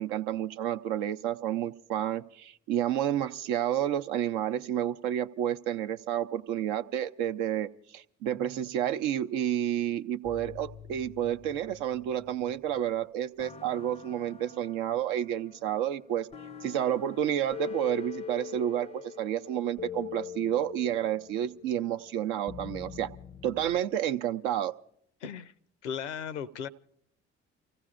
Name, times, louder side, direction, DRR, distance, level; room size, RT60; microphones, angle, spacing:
voice 1, 0.0-16.3 16.6-23.1 23.4-24.7, right 11 dB, 70° right, 10 dB, 0.7 m, -30 dB
sound 1, 8.3-9.5 10.2-12.8 13.4-23.8, left 8 dB, 20° left, 0.5 m, -45 dB
voice 2, 25.2-25.5 25.8-26.7, left 7 dB, 85° left, 16 dB, 0.6 m, -36 dB
30.0 x 16.0 x 2.5 m, 0.70 s
figure-of-eight pair, 45°, 35 cm